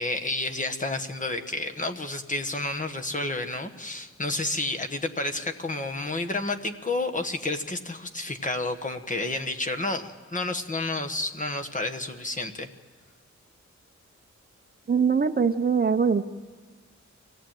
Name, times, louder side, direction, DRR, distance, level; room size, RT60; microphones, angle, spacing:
voice 1, 0.0-12.7, left 2 dB, 25° left, 5 dB, 1.3 m, -30 dB
voice 2, 14.9-16.2, right 6 dB, 35° right, 9 dB, 0.6 m, -22 dB
24.5 x 17.0 x 9.0 m, 1.5 s
wide cardioid pair, 175°, 29 cm